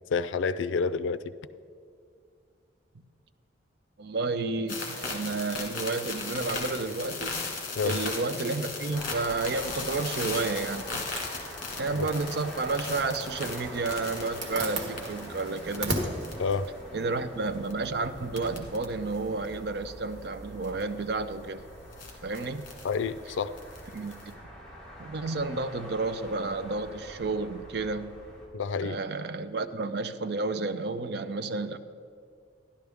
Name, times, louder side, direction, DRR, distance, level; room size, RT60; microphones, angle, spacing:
voice 1, 0.1-1.2 7.8-8.0 11.9-12.1 16.4-16.7 22.8-23.5 28.5-29.0, left 5 dB, 80° left, 14 dB, 0.4 m, -28 dB
voice 2, 4.0-7.5 7.8-11.1 11.8-16.0 16.9-21.6 22.2-22.7 23.9-24.3 25.0-28.1 28.8-31.8, right 3 dB, 60° right, 11 dB, 0.5 m, -31 dB
sound 1, 4.7-15.8 16.2-16.7 17.6-17.8 18.4-18.8 19.1-19.2 20.6-20.8 21.9-22.9 23.6-24.3, left 4 dB, 45° left, 1.7 m, -37 dB
sound 2, 8.9-28.5, equal, 5° left, 1.9 m, -44 dB
Zipper (clothing), 9.5-17.7, right 2 dB, 90° right, 1.5 m, -39 dB
12.5 x 11.5 x 3.5 m, 2.2 s
head